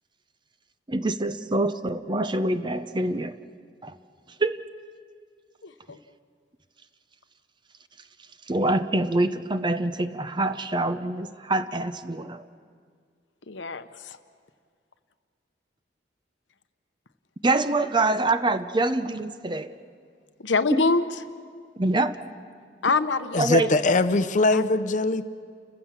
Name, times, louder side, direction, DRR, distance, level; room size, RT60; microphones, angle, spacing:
voice 1, 0.9-3.4 3.8-4.0 4.4-4.6 8.5-12.4 17.4-19.7 20.7-20.8 21.8-22.2 23.4-23.7, right 2 dB, 25° right, 11 dB, 0.6 m, -25 dB
voice 2, 5.6-6.0 13.5-14.2 20.4-21.1 22.8-24.3 24.5-24.6, left 3 dB, 75° left, 11 dB, 0.9 m, -26 dB
voice 3, 23.3-25.2, left 2 dB, 40° left, 12 dB, 0.7 m, -22 dB
30.0 x 15.5 x 7.3 m, 2.1 s
head